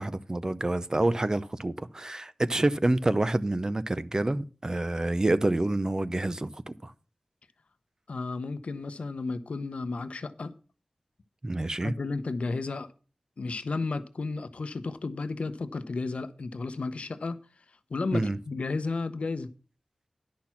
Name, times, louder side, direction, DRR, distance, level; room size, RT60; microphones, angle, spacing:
voice 1, 0.0-6.9 11.4-11.9 18.1-18.4, right 2 dB, 30° right, 0.6 m, -27 dB
voice 2, 8.1-10.5 11.8-12.9 13.4-17.4 17.9-19.5, left 3 dB, 80° left, 0.7 m, -33 dB
10.5 x 6.3 x 5.8 m
wide cardioid pair, 65°, 2 cm